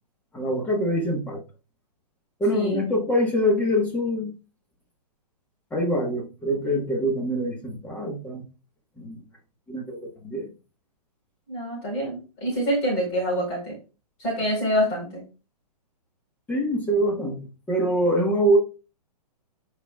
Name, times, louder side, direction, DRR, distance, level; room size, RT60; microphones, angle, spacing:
voice 1, 0.3-1.4 2.4-4.3 5.7-8.4 9.0-9.2 9.7-10.5 16.5-17.4 17.7-18.6, equal, 10° left, 1.2 m, -24 dB
voice 2, 2.5-2.9 11.5-13.8 14.2-15.2, equal, 30° left, 3.8 m, -26 dB
11.5 x 5.0 x 2.3 m
hypercardioid pair, 160°, 21 cm